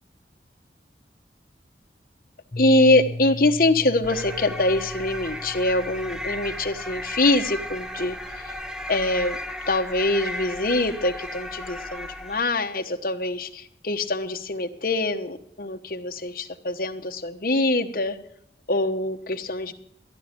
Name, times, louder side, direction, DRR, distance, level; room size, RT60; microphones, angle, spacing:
Piano, 2.5-8.1, left 2 dB, 35° left, 0.5 m, -38 dB
voice 1, 2.6-8.5 8.9-9.4 9.7-18.2 18.7-19.7, left 2 dB, 50° left, 4 dB, 1.2 m, -24 dB
sound 1, 4.0-12.6, left 1 dB, 5° right, 0.8 m, -35 dB
14.5 x 10.5 x 5.3 m, 0.72 s
head